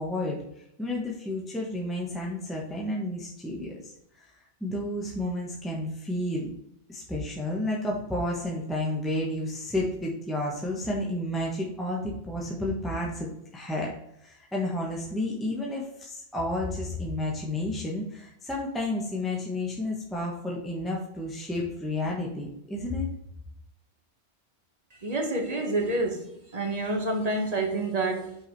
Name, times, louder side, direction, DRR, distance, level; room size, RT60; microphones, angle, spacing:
voice 1, 0.0-4.3 4.6-6.5 6.9-13.9 14.2-23.1, left 1 dB, ahead, -3 dB, 1.1 m, -31 dB
voice 2, 25.0-28.4, right 2 dB, 40° right, 2 dB, 1.3 m, -28 dB
5.6 x 4.8 x 4.7 m, 0.79 s
omnidirectional pair, 1.1 m